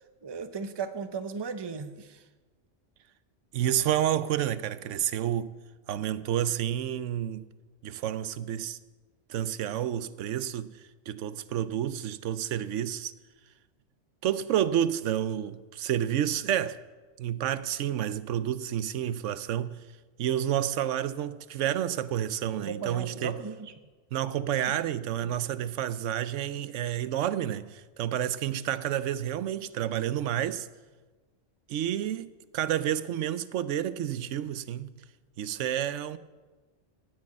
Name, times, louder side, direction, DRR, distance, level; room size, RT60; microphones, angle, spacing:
voice 1, 0.2-2.2 22.6-23.7 25.2-25.4, right 5 dB, 25° right, 0.6 m, -36 dB
voice 2, 3.5-5.6 5.9-7.5 7.8-8.8 9.3-10.8 11.1-13.1 14.2-16.8 17.2-19.8 20.2-23.4 24.1-30.7 31.7-34.9 35.4-36.2, right 11 dB, 80° right, 0.9 m, -30 dB
17.0 x 6.5 x 8.4 m
omnidirectional pair, 1.3 m